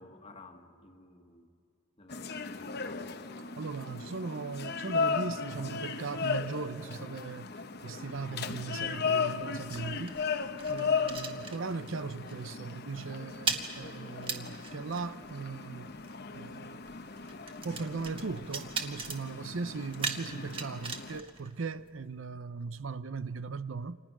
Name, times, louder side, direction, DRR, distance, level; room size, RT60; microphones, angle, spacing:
voice 1, 0.0-1.5 2.0-3.3, left 2 dB, 30° left, 1.6 m, -53 dB
sound 1, 2.1-21.2, left 5 dB, 50° left, 0.9 m, -36 dB
voice 2, 3.6-10.1 10.7-15.9 16.3-16.8 17.6-24.0, right 4 dB, 75° right, 0.6 m, -38 dB
sound 2, 8.8-12.0 12.3-12.5 12.8-22.2, right 4 dB, 25° right, 1.5 m, -40 dB
29.0 x 27.0 x 6.1 m
head